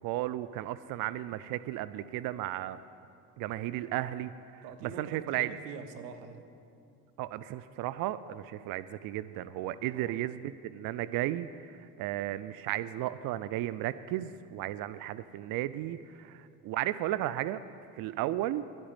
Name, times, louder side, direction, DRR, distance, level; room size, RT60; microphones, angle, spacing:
voice 1, 0.0-2.8 3.4-5.5 7.2-17.6 17.9-18.6, right 14 dB, 45° right, 15 dB, 0.5 m, -34 dB
voice 2, 4.6-6.5 9.9-10.2 16.2-16.4 18.2-18.4, right 6 dB, 80° right, 8 dB, 1.1 m, -45 dB
11.0 x 8.6 x 8.9 m, 2.5 s
hypercardioid pair, 60°, 48 cm